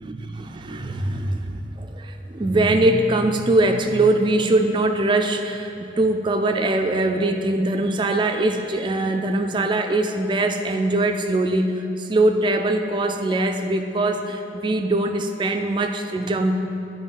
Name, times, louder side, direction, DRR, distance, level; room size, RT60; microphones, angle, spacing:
voice 1, 0.0-16.6, right 2 dB, 25° right, 5 dB, 0.3 m, -22 dB
9.0 x 3.0 x 5.5 m, 2.9 s
head